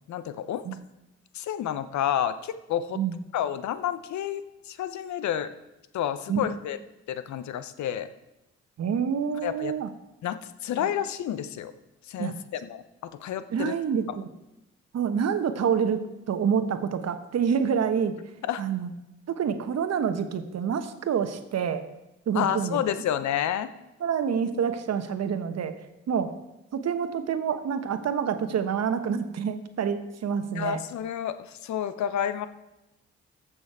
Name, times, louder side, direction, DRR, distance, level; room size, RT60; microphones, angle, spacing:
voice 1, 0.1-0.6 1.3-3.0 3.3-5.5 5.9-6.8 7.1-8.1 9.4-9.7 10.2-11.7 12.1-13.7 18.5-18.6 22.3-23.7 30.5-32.5, left 10 dB, 70° left, 13 dB, 0.8 m, -30 dB
voice 2, 8.8-9.9 10.8-10.9 12.2-12.4 13.5-14.3 14.9-18.2 18.6-18.9 19.3-21.8 22.3-22.8 24.0-25.8 26.1-26.3 26.7-30.8, right 7 dB, 60° right, 10 dB, 1.1 m, -27 dB
14.5 x 6.2 x 4.7 m, 0.94 s
supercardioid pair, 50°, 30 cm